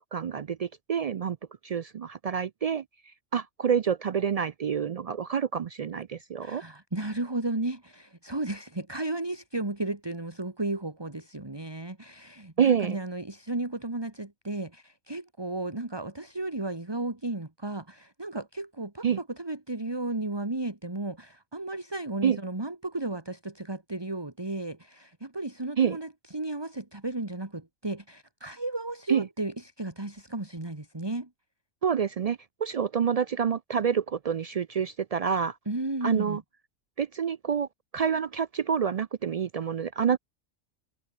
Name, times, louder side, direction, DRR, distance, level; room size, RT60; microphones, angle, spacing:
voice 1, 0.1-1.4 1.6-2.8 3.3-6.6 12.6-13.0 19.0-19.2 22.2-22.4 25.8-26.0 29.1-29.3 31.8-35.6 36.0-36.4 37.0-37.7 37.9-40.2, right 7 dB, 75° right, 0.3 m, -27 dB
voice 2, 6.4-31.3 35.7-36.4, right 2 dB, 20° right, 2.1 m, -34 dB
omnidirectional pair, 1.2 m